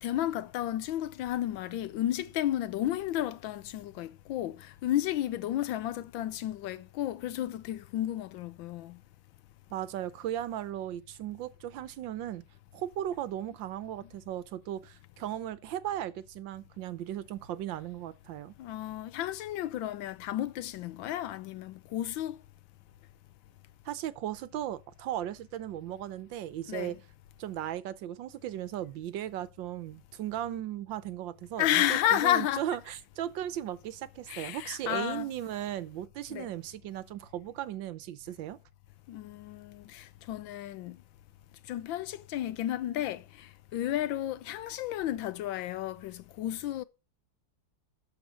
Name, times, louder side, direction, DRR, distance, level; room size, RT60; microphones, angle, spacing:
voice 1, 0.0-9.0 18.6-22.4 26.7-27.0 31.6-32.6 34.3-35.3 36.3-36.5 39.1-41.0 41.7-46.8, left 12 dB, 80° left, 1.4 m, -32 dB
voice 2, 9.7-12.4 12.7-18.5 23.8-27.0 27.4-38.6, right 12 dB, 80° right, 1.4 m, -37 dB
12.5 x 4.3 x 6.2 m
omnidirectional pair, 2.1 m